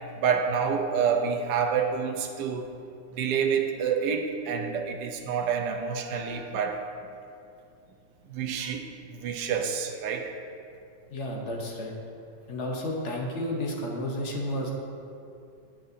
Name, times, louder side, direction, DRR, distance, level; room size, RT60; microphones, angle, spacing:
voice 1, 0.2-2.7 3.1-6.8 8.3-10.3, right 6 dB, 70° right, 3 dB, 1.1 m, -28 dB
voice 2, 11.1-11.9 12.5-14.7, left 1 dB, 60° left, -1 dB, 0.7 m, -31 dB
9.3 x 8.8 x 2.6 m, 2.6 s
omnidirectional pair, 2.3 m